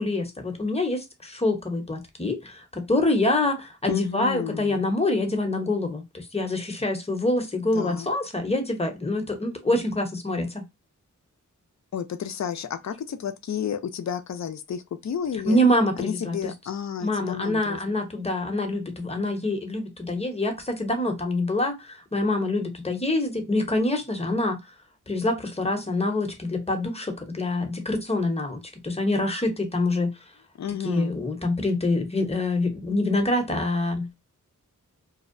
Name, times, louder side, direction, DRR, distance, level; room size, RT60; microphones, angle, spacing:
voice 1, 0.0-10.6 15.5-16.5 17.0-24.6 25.1-30.1 30.8-34.1, left 1 dB, 20° left, 0.8 m, -26 dB
voice 2, 3.9-4.8 7.7-8.1 11.9-15.6 16.0-17.8 30.6-31.2, left 8 dB, 60° left, 0.5 m, -31 dB
2.7 x 2.0 x 2.5 m
wide cardioid pair, 65°, 32 cm